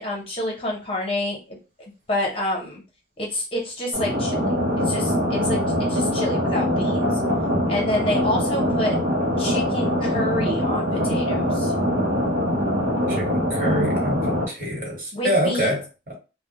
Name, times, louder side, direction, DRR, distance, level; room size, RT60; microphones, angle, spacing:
voice 1, 0.0-1.6 2.1-2.8 3.2-4.6 4.8-5.6 5.9-7.1 7.7-9.0 9.4-11.7 15.1-15.8, left 1 dB, 30° left, 0.7 m, -28 dB
sound 1, 3.9-14.4, equal, 90° right, 0.7 m, -23 dB
voice 2, 13.1-16.1, equal, 50° right, 1.1 m, -26 dB
2.2 x 2.0 x 2.8 m
head